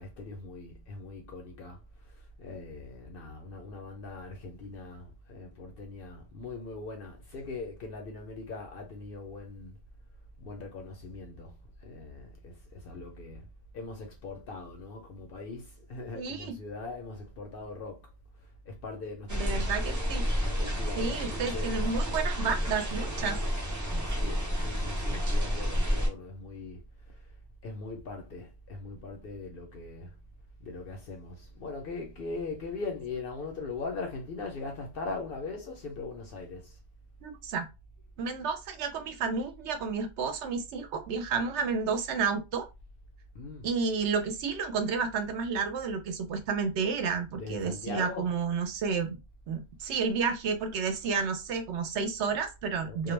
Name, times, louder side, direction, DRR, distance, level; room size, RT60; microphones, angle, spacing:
voice 1, 0.0-9.8 10.4-13.5 13.7-18.1 18.7-19.8 20.2-21.9 24.1-27.2 27.6-30.2 30.6-36.8 43.3-43.7 47.3-48.3 52.9-53.1, left 3 dB, 60° left, 0.7 m, -41 dB
voice 2, 16.1-16.5 19.3-20.2 21.0-23.4 23.9-24.0 37.2-37.7 38.2-42.7 43.6-49.2 49.5-53.1, right 5 dB, 70° right, 0.8 m, -31 dB
sound 1, 19.3-26.1, equal, 25° right, 0.4 m, -30 dB
2.2 x 2.1 x 3.1 m
omnidirectional pair, 1.3 m